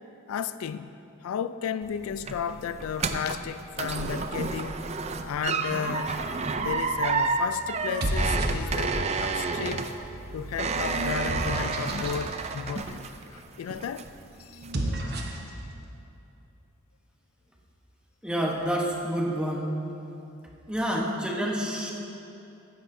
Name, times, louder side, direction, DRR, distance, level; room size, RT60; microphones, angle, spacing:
voice 1, 0.3-1.0 1.2-4.8 5.2-6.2 6.5-9.9 10.3-14.1 14.4-14.6, left 7 dB, 85° left, 13 dB, 0.3 m, -34 dB
sound 1, 1.8-13.4 13.7-14.2 14.6-14.7, right 4 dB, 30° right, 0.4 m, -30 dB
sound 2, 6.5-7.0 7.8-9.1 9.9-12.2 14.5-15.5, right 1 dB, 50° right, 1.0 m, -32 dB
voice 2, 18.2-19.7 20.7-21.9, equal, 5° right, -2 dB, 1.0 m, -28 dB
14.5 x 10.0 x 2.7 m, 2.8 s
head